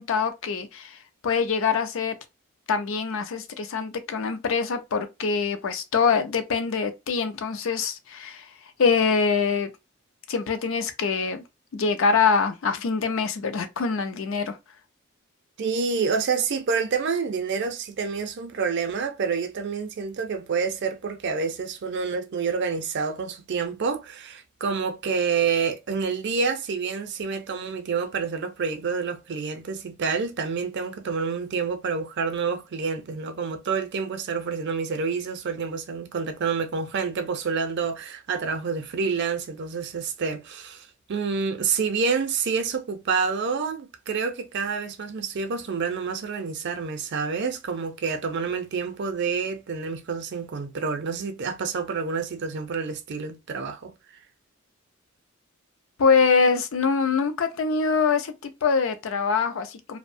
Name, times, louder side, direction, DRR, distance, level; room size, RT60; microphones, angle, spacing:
voice 1, 0.0-2.1 2.7-8.5 8.8-9.7 10.3-11.4 11.7-14.6 56.0-60.0, left 5 dB, 65° left, 0.4 m, -24 dB
voice 2, 15.6-54.0, right 5 dB, 55° right, 0.5 m, -28 dB
2.6 x 2.1 x 2.5 m
head